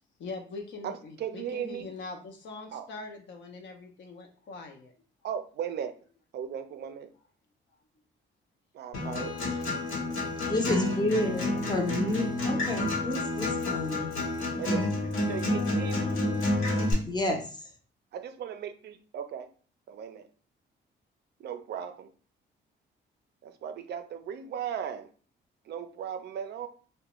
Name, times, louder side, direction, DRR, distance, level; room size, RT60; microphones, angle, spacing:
voice 1, 0.2-4.9, left 3 dB, 65° left, 0.5 m, -42 dB
voice 2, 0.8-1.9 2.7-2.9 5.2-6.0 6.3-7.1 8.7-9.6 9.9-10.1 11.5-11.6 14.6-14.9 15.3-16.2 18.1-19.5 19.9-20.3 21.4-22.1 23.4-25.1 25.7-26.7, right 8 dB, 60° right, 0.4 m, -37 dB
Acoustic guitar, 8.9-16.9, left 2 dB, 90° left, 1.0 m, -29 dB
voice 3, 10.5-14.1 17.1-17.5, left 1 dB, 20° left, 0.6 m, -30 dB
2.3 x 2.1 x 2.9 m
cardioid pair, 90°, 20 cm